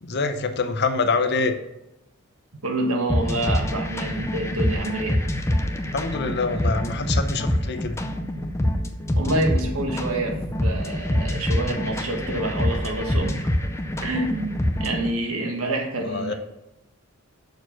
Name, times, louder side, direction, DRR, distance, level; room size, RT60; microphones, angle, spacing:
voice 1, 0.0-1.6 5.9-8.0 16.1-16.3, left 4 dB, 50° left, 9 dB, 0.7 m, -25 dB
voice 2, 2.6-5.2 9.2-13.5 14.0-16.3, right 1 dB, 85° right, 2 dB, 1.5 m, -27 dB
sound 1, 3.1-15.1, left 1 dB, 15° left, 0.5 m, -26 dB
6.5 x 4.5 x 5.9 m, 0.90 s
head